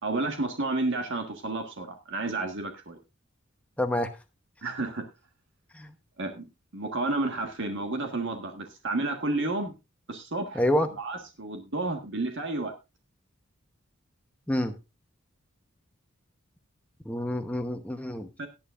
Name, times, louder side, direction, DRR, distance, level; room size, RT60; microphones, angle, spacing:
voice 1, 0.0-3.0 4.6-5.1 6.2-6.4 6.7-9.7 10.1-12.7 18.4-18.5, right 2 dB, 60° right, 4 dB, 1.5 m, -31 dB
voice 2, 3.8-4.1 5.7-5.9 10.5-10.9 14.5-14.7 17.1-18.3, left 1 dB, 5° left, 5 dB, 0.9 m, -27 dB
18.0 x 8.8 x 2.5 m, 0.27 s
head